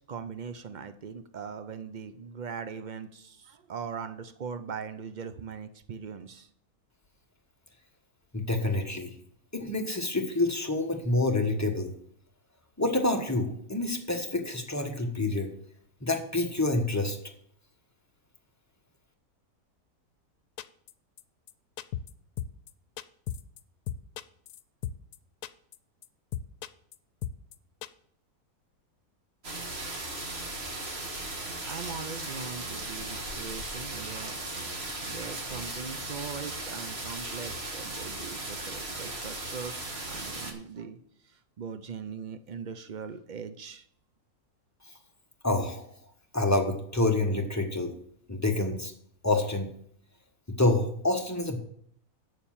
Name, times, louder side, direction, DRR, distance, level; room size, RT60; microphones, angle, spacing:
voice 1, 0.0-6.5 31.3-34.5 35.0-41.0 41.6-43.8, right 6 dB, 65° right, 10 dB, 0.4 m, -40 dB
voice 2, 8.3-9.1 9.5-11.9 12.8-15.5 16.0-17.2 45.4-45.8 46.3-47.9 48.3-48.9 49.2-49.7 50.5-51.6, left 2 dB, 10° left, 2 dB, 1.1 m, -27 dB
sound 1, 20.6-20.9 21.2-21.3 21.5-21.6 21.8-22.1 22.4-22.7 23.0-23.6 23.9-25.2 25.4-25.8 26.0-26.1 26.3-27.0 27.2-27.6 27.8-27.9, left 10 dB, 90° left, 1.1 m, -35 dB
sound 2, 29.4-40.5, right 2 dB, 45° right, 1.7 m, -37 dB
8.0 x 7.0 x 7.3 m, 0.64 s
omnidirectional pair, 1.6 m